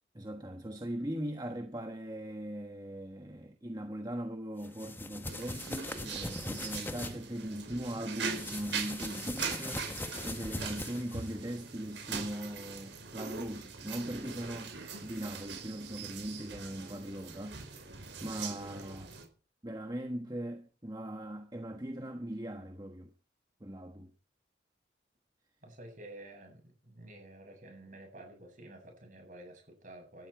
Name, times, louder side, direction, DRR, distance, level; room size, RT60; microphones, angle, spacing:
voice 1, 0.1-14.7 15.0-17.9 18.2-19.1 19.6-23.1 23.6-24.1, right 1 dB, 20° right, 1.3 m, -40 dB
sound 1, 4.6-7.1 8.1-11.3, left 2 dB, 10° left, 1.2 m, -40 dB
sound 2, 5.3-19.3, right 5 dB, 90° right, 5.4 m, -42 dB
voice 2, 25.6-30.3, right 1 dB, 45° right, 8.0 m, -50 dB
19.0 x 13.0 x 4.8 m
head